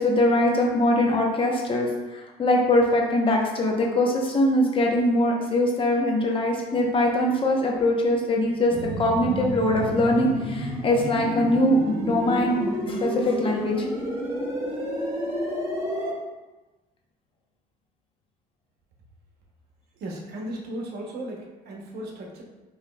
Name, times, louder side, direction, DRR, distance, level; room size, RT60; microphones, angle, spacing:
voice 1, 0.0-1.9 2.1-12.6 12.9-13.9, left 1 dB, 30° left, 0 dB, 0.7 m, -22 dB
sound 1, 8.7-16.1, equal, 15° right, 1.1 m, -30 dB
voice 2, 20.0-22.4, right 1 dB, 70° right, 0 dB, 0.8 m, -36 dB
4.9 x 3.1 x 2.2 m, 1.1 s
cardioid pair, 110°, 17 cm